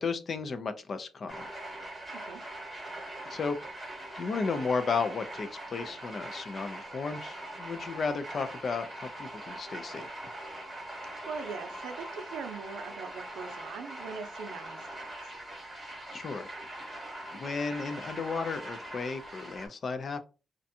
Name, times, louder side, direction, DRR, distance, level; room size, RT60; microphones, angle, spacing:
voice 1, 0.0-1.5 3.3-10.1 16.1-16.9 17.3-20.2, left 4 dB, 35° left, 0.3 m, -34 dB
sound 1, 1.3-19.7, right 1 dB, 10° right, 1.1 m, -42 dB
voice 2, 11.2-15.3, right 5 dB, 90° right, 0.5 m, -41 dB
2.5 x 2.2 x 2.7 m
cardioid pair, 155°, 0 cm